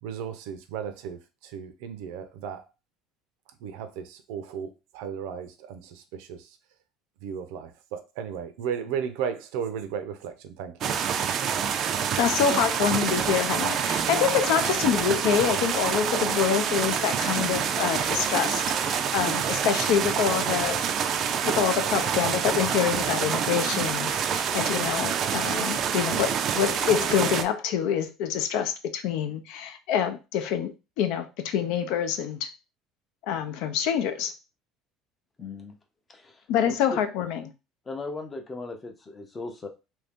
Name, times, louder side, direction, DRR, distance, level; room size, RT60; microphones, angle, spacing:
voice 1, 0.0-2.6 3.6-6.6 7.2-11.0, right 7 dB, 80° right, 0.6 m, -35 dB
sound 1, 10.8-27.4, right 8 dB, 40° right, 0.4 m, -27 dB
voice 2, 12.2-20.9 21.4-32.5 33.3-34.3 36.5-37.4, left 8 dB, 70° left, 0.5 m, -26 dB
voice 3, 35.4-35.8 36.1-37.0 37.9-39.7, left 3 dB, 20° left, 0.6 m, -38 dB
2.9 x 2.7 x 3.5 m
cardioid pair, 150°, 0 cm